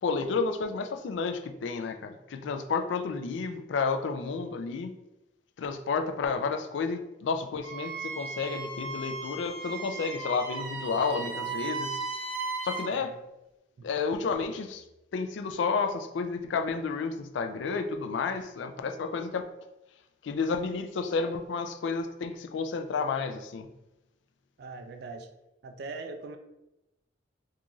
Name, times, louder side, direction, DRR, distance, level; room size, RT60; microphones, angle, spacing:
voice 1, 0.0-4.9 5.6-12.0 12.6-13.1 13.8-14.8 15.1-19.4 20.2-23.7, left 4 dB, 75° left, 0.4 m, -31 dB
Wind instrument woodwind instrument, 7.6-12.9, right 4 dB, 85° right, 0.8 m, -36 dB
voice 2, 12.9-13.2 13.8-13.9 24.6-25.3 25.6-26.4, right 3 dB, 60° right, 0.3 m, -41 dB
3.7 x 2.4 x 2.9 m
head